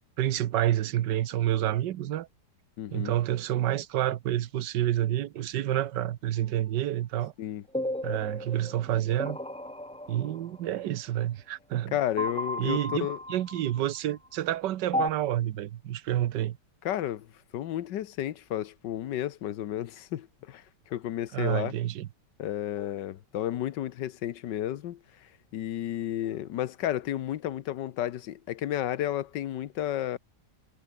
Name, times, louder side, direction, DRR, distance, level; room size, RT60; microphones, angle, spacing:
voice 1, 0.2-2.3 2.9-7.3 8.0-9.4 10.1-11.9 12.6-16.6 21.3-22.1, right 12 dB, 80° right, 1.5 m, -29 dB
voice 2, 2.8-3.1 7.4-7.6 11.9-13.2 16.8-17.3 17.5-21.7 22.4-30.2, left 12 dB, 90° left, 1.6 m, -32 dB
sound 1, 7.7-10.8 12.2-14.1 14.9-15.1, left 1 dB, 5° left, 0.9 m, -34 dB
omnidirectional pair, 1.8 m